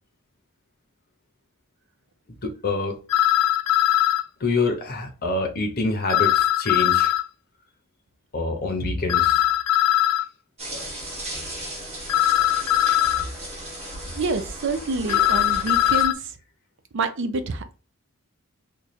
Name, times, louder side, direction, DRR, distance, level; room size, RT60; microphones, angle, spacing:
voice 1, 2.4-3.0 4.4-7.1 8.3-9.4 13.2-13.3, left 3 dB, 45° left, 0.7 m, -26 dB
sound 1, 3.1-4.2 6.1-7.2 9.1-10.2 12.1-13.2 15.1-16.1, left 13 dB, 85° left, 0.3 m, -20 dB
sound 2, 10.6-16.0, right 1 dB, 30° right, 1.0 m, -36 dB
voice 2, 14.1-16.4 16.9-17.8, right 3 dB, 55° right, 0.5 m, -27 dB
3.1 x 2.3 x 4.0 m
head